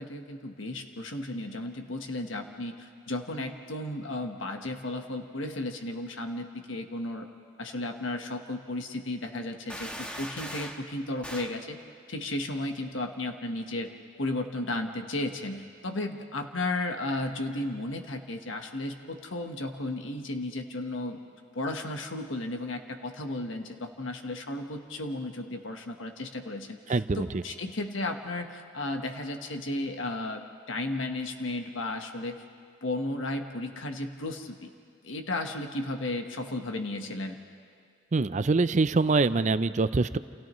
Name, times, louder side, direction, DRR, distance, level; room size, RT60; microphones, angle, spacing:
voice 1, 0.0-7.3 7.6-11.8 12.1-13.9 14.2-21.2 21.5-30.4 30.7-32.4 32.8-34.7 35.0-37.4, left 2 dB, 75° left, 4 dB, 1.3 m, -34 dB
sound 1, 9.7-10.9 11.2-11.6, equal, 5° left, 1.3 m, -39 dB
voice 2, 26.9-27.4 38.1-40.2, right 3 dB, 40° right, 13 dB, 0.5 m, -24 dB
29.0 x 29.0 x 3.1 m, 2.2 s
head